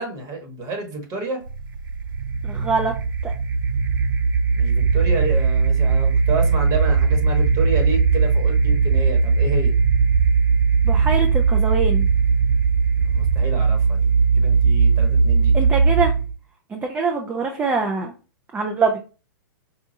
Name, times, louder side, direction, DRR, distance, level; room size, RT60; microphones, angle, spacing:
voice 1, 0.0-1.4 4.5-9.7 13.0-14.1 14.3-15.5, right 3 dB, 35° right, 3 dB, 1.4 m, -29 dB
sound 1, 1.5-16.3, right 5 dB, 80° right, 0.4 m, -19 dB
voice 2, 2.4-2.9 3.2-3.3 10.8-12.1 15.5-16.1 16.7-18.1 18.5-19.0, right 4 dB, 15° right, 3 dB, 0.5 m, -23 dB
4.8 x 2.3 x 2.8 m, 0.33 s
hypercardioid pair, 115°, 11 cm